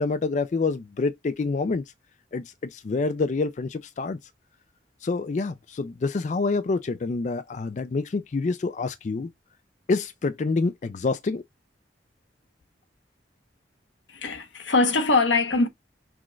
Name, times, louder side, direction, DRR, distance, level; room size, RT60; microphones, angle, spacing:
voice 1, 0.0-1.8 2.3-4.2 5.0-9.3 9.9-11.4, left 3 dB, 40° left, 0.4 m, -27 dB
voice 2, 14.1-15.7, left 3 dB, 90° left, 1.1 m, -22 dB
6.0 x 2.4 x 3.1 m
head